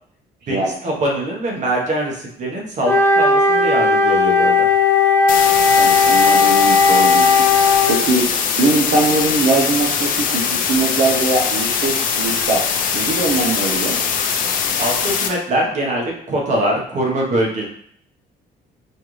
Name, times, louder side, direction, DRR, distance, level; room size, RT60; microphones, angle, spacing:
voice 1, 0.5-4.7 14.8-17.7, right 1 dB, 45° right, -1 dB, 1.1 m, -22 dB
Wind instrument woodwind instrument, 2.8-8.0, left 4 dB, 15° left, 0.8 m, -15 dB
sound 1, 5.3-15.3, left 6 dB, 55° left, 0.6 m, -21 dB
voice 2, 5.7-7.3 7.9-8.2 8.6-12.6 12.9-13.9, right 3 dB, 65° right, -4 dB, 0.8 m, -21 dB
4.4 x 2.5 x 3.1 m, 0.66 s
cardioid pair, 110°, 17 cm